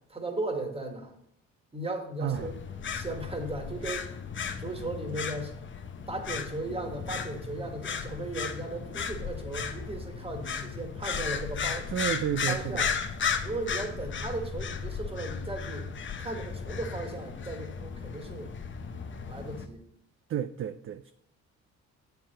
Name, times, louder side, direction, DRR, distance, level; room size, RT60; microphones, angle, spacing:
voice 1, 0.1-1.1 1.7-4.2 4.6-5.5 6.1-11.9 12.5-12.9 13.4-15.9 16.2-18.5 19.3-19.8, right 2 dB, 20° right, 4 dB, 1.6 m, -36 dB
voice 2, 2.2-2.5 11.9-12.8 20.3-21.1, right 10 dB, 45° right, 10 dB, 0.4 m, -31 dB
sound 1, 2.3-19.7, left 6 dB, 40° left, 0.8 m, -35 dB
7.3 x 4.7 x 6.2 m, 0.74 s
cardioid pair, 90°, 30 cm